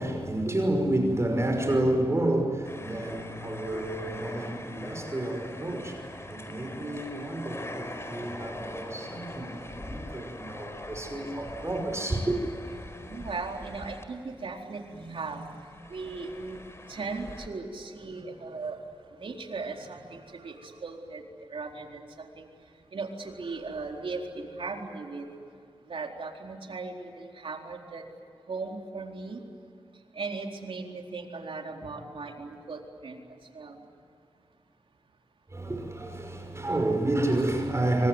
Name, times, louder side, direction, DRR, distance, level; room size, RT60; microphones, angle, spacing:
voice 1, 0.0-12.4 35.5-38.1, right 1 dB, 30° right, 5.8 m, -30 dB
sound 1, 2.6-14.5 14.8-17.5, left 1 dB, 30° left, 4.5 m, -42 dB
voice 2, 12.7-16.6 16.9-18.8 19.2-21.2 21.5-22.5 22.9-25.3 25.9-28.0 28.5-29.4 30.1-33.2 33.5-33.8, right 4 dB, 75° right, 4.2 m, -38 dB
28.0 x 25.0 x 8.1 m
wide cardioid pair, 75°, 9 cm